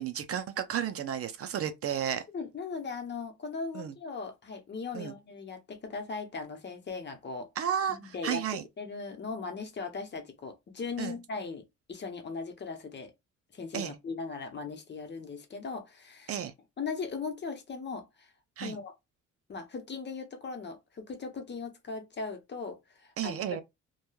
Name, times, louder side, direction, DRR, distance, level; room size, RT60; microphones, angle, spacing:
voice 1, 0.0-2.2 3.7-3.9 4.9-5.1 7.6-8.6 11.0-11.2 13.7-14.0 16.3-16.5 18.6-18.8 23.2-23.6, right 9 dB, 50° right, 0.5 m, -32 dB
voice 2, 2.3-7.5 7.9-11.6 11.9-13.1 13.5-16.4 16.8-18.3 18.6-18.9 19.5-23.4, left 4 dB, 35° left, 0.8 m, -38 dB
2.9 x 2.2 x 2.3 m
cardioid pair, 90°, 30 cm